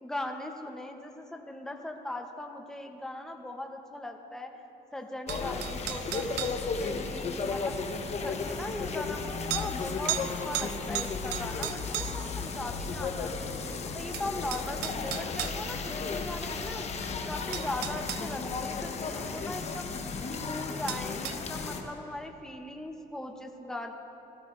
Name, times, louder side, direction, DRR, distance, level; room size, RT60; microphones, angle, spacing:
voice 1, 0.0-4.5 4.9-6.5 6.8-7.8 8.2-13.5 13.9-16.9 17.3-19.9 20.3-23.9, left 1 dB, 5° left, 3 dB, 0.8 m, -39 dB
sound 1, 5.3-21.8, left 4 dB, 40° left, 1.0 m, -34 dB
sound 2, 5.3-6.6 8.1-8.2 9.5-9.7 10.1-10.3 10.5-12.3 13.7-13.8 14.1-15.6 17.0-17.1 17.5-18.2 20.9-21.4, right 14 dB, 80° right, 0.5 m, -35 dB
17.0 x 15.0 x 2.6 m, 2.9 s
cardioid pair, 110°, 17 cm